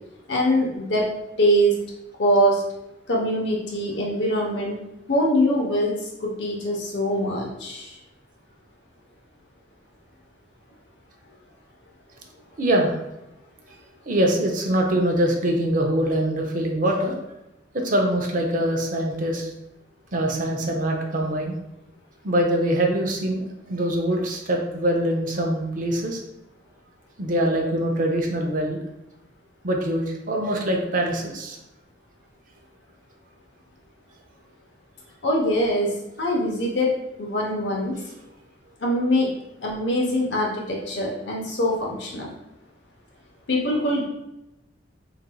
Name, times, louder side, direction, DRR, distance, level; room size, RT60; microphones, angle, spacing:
voice 1, 0.3-1.1 1.4-1.8 2.2-2.6 3.1-4.7 5.1-8.0 35.2-38.0 38.8-39.3 39.6-42.3 43.5-44.0, equal, 70° left, -1 dB, 0.9 m, -23 dB
voice 2, 12.6-13.0 14.1-17.1 17.7-19.5 20.1-21.6 22.2-26.2 27.2-28.8 29.6-31.6, right 1 dB, 45° right, 1 dB, 0.6 m, -23 dB
4.4 x 3.9 x 2.2 m, 0.90 s
head